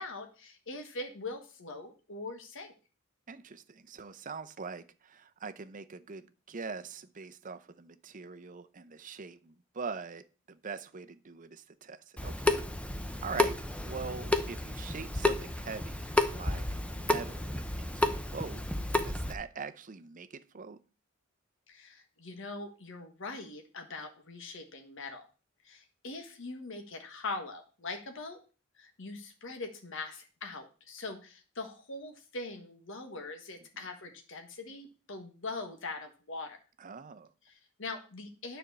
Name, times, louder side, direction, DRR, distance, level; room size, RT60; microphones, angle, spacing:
voice 1, 0.0-2.7 13.3-13.5 21.7-25.2 25.6-28.4 28.8-36.6 37.4-38.6, left 3 dB, 65° left, 1.5 m, -42 dB
voice 2, 3.3-10.2 10.5-12.6 13.1-13.6 13.8-16.7 17.0-18.6 19.0-20.8 36.8-37.3, right 5 dB, 40° right, 0.7 m, -43 dB
Water tap faucet / Sink (filling or washing) / Drip, 12.2-19.3, left 2 dB, 5° left, 0.7 m, -31 dB
9.8 x 4.5 x 6.7 m
head